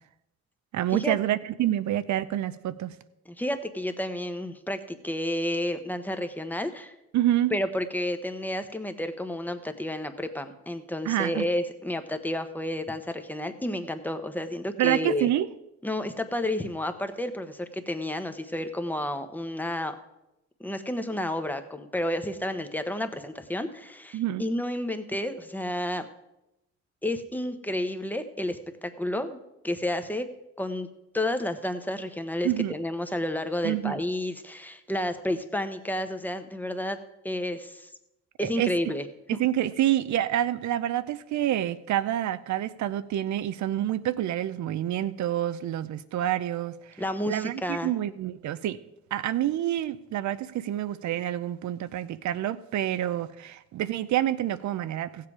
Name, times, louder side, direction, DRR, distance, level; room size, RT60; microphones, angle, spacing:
voice 1, 0.7-2.9 7.1-7.5 11.0-11.5 14.8-15.5 24.1-24.4 32.4-32.7 33.6-34.0 38.4-38.9 39.3-48.8 49.1-55.3, right 12 dB, 70° right, 15 dB, 0.7 m, -28 dB
voice 2, 3.3-6.9 7.5-15.3 15.8-20.0 20.6-26.1 27.0-29.4 29.6-30.3 30.6-30.9 31.1-37.0 37.2-37.9 38.4-39.1 47.0-47.9, left 1 dB, 5° left, 8 dB, 1.1 m, -31 dB
15.5 x 7.6 x 4.8 m, 0.90 s
cardioid pair, 90°, 30 cm